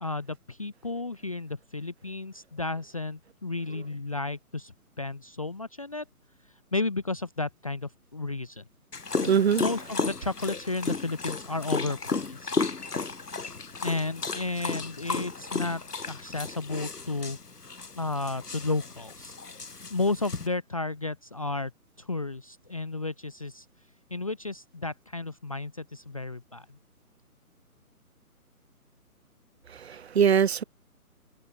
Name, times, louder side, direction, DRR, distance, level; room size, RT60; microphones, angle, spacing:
voice 1, 0.0-6.0 6.7-8.6 9.2-12.5 13.8-15.8 16.1-17.4 17.9-19.3 19.9-21.7 22.0-23.6 24.1-26.8, left 3 dB, 25° left, 0.6 m, -33 dB
Dog, 8.9-20.5, left 4 dB, 90° left, 7.3 m, -34 dB
voice 2, 9.3-9.6 29.7-30.6, right 7 dB, 45° right, 1.2 m, -22 dB
hypercardioid pair, 160°, 45 cm